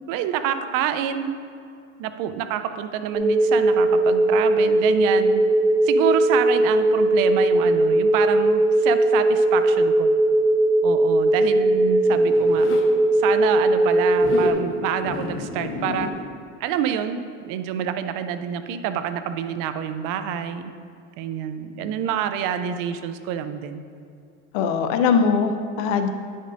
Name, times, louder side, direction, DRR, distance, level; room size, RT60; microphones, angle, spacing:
voice 1, 0.1-1.3 2.0-5.4 5.8-10.1 10.8-12.7 13.1-16.1 16.6-20.7 21.2-23.8, right 9 dB, 60° right, 10 dB, 0.6 m, -27 dB
sound 1, 3.1-14.5, right 1 dB, 10° right, 0.6 m, -19 dB
Zipper (clothing), 11.2-12.9 14.1-14.6 15.0-16.1, left 4 dB, 35° left, 0.8 m, -31 dB
voice 2, 24.5-26.1, left 6 dB, 70° left, 7 dB, 0.7 m, -21 dB
9.7 x 5.2 x 2.6 m, 2.4 s
supercardioid pair, 110°, 37 cm